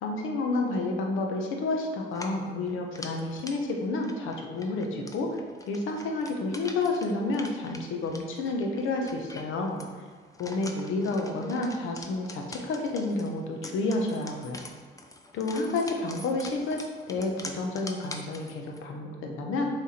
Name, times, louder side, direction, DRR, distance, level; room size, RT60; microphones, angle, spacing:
voice 1, 0.0-5.3 5.7-9.8 10.4-14.6 15.3-19.7, left 2 dB, 85° left, 2 dB, 1.0 m, -30 dB
sound 1, 2.1-18.9, left 2 dB, 15° left, 0.6 m, -45 dB
7.2 x 3.5 x 4.3 m, 1.5 s
cardioid pair, 90°, 20 cm